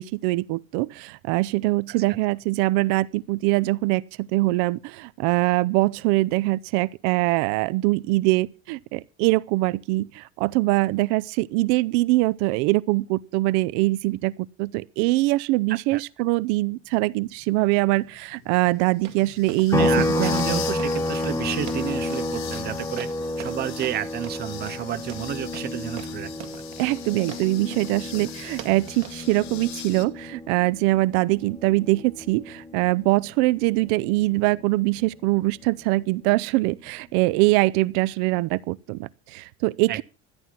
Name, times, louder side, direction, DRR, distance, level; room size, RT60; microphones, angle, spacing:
voice 1, 0.0-19.9 20.2-20.3 26.8-40.0, right 20 dB, 75° right, 0.6 m, -23 dB
voice 2, 15.7-16.0 19.8-23.1 23.4-26.3 39.9-40.0, right 11 dB, 30° right, 0.7 m, -31 dB
sound 1, 16.9-30.0, left 10 dB, 55° left, 1.6 m, -41 dB
sound 2, 19.0-29.2, right 12 dB, 50° right, 2.0 m, -43 dB
sound 3, 19.7-33.3 33.6-35.8, left 2 dB, 10° left, 1.1 m, -31 dB
13.5 x 11.0 x 5.9 m
cardioid pair, 150°, 33 cm